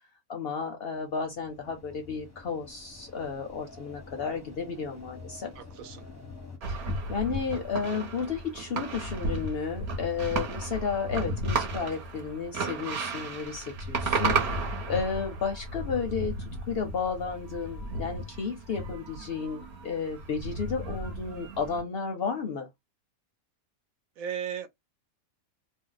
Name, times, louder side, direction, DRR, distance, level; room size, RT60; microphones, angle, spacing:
voice 1, 0.3-5.5 6.7-22.7, left 5 dB, 60° left, 0.7 m, -33 dB
sound 1, 0.9-6.6, left 3 dB, 15° left, 0.6 m, -48 dB
voice 2, 5.5-6.1 24.2-24.7, right 8 dB, 75° right, 1.0 m, -36 dB
sound 2, 6.6-21.8, right 2 dB, 55° right, 1.0 m, -34 dB
2.6 x 2.1 x 3.8 m
omnidirectional pair, 1.5 m